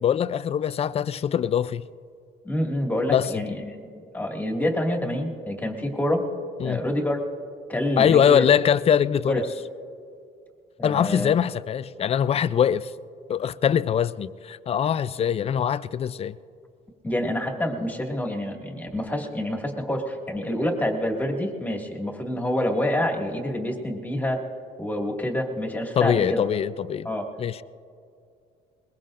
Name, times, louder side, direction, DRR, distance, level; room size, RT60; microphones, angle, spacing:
voice 1, 0.0-1.9 3.1-3.4 6.6-6.8 8.0-9.4 10.8-12.9 13.3-16.4 26.0-27.1 27.4-27.6, left 8 dB, 35° left, 16 dB, 0.4 m, -22 dB
voice 2, 2.4-3.8 4.1-6.2 6.6-7.2 7.7-8.5 9.3-9.4 10.8-11.3 17.0-24.4 24.8-26.4 27.0-27.2, left 1 dB, 10° left, 0 dB, 2.1 m, -27 dB
21.5 x 21.5 x 2.6 m, 2.4 s
cardioid pair, 110°, 17 cm